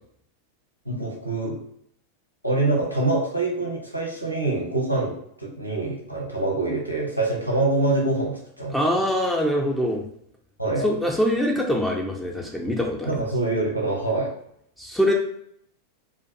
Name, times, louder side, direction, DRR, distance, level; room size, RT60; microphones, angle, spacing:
voice 1, 0.8-1.6 2.4-9.0 10.6-11.1 13.1-14.3, right 2 dB, 90° left, -1 dB, 0.6 m, -25 dB
voice 2, 8.7-10.0 10.8-13.2 14.8-15.1, equal, 5° left, -1 dB, 0.4 m, -23 dB
2.4 x 2.2 x 2.5 m, 0.71 s
figure-of-eight pair, 90°, 0 cm